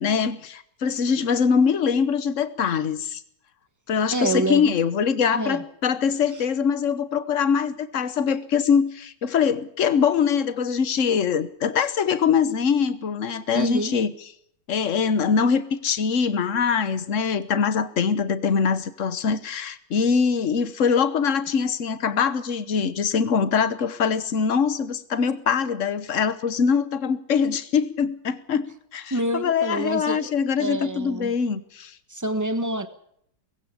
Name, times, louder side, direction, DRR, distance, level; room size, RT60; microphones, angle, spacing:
voice 1, 0.0-3.2 3.9-14.1 14.7-28.7 28.9-31.9, left 6 dB, 45° left, 14 dB, 1.4 m, -23 dB
voice 2, 4.1-4.8 5.3-5.6 13.5-13.9 29.1-30.3 30.6-31.3 32.1-32.9, right 2 dB, 10° right, 11 dB, 1.4 m, -27 dB
20.0 x 16.0 x 8.6 m, 0.68 s
omnidirectional pair, 2.0 m